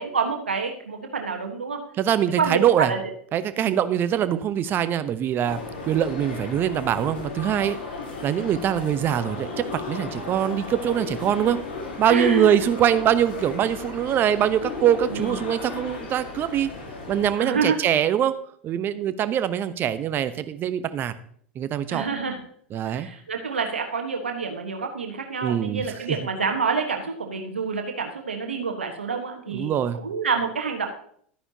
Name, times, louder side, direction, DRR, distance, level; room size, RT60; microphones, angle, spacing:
voice 1, 0.0-1.8 2.4-3.1 3.6-3.8 12.0-12.6 15.1-15.4 17.4-17.8 21.9-22.4 22.9-30.9, right 5 dB, 85° right, 3 dB, 1.3 m, -27 dB
voice 2, 2.0-2.9 3.3-7.8 8.2-11.6 12.0-16.7 17.1-18.4 18.6-21.1 21.6-22.1 22.7-23.1 25.4-26.2 29.5-30.0, right 10 dB, 35° right, 13 dB, 0.8 m, -23 dB
sound 1, 5.4-17.3, left 3 dB, 75° left, 3.3 m, -35 dB
12.5 x 9.8 x 2.8 m, 0.63 s
hypercardioid pair, 85°, 6 cm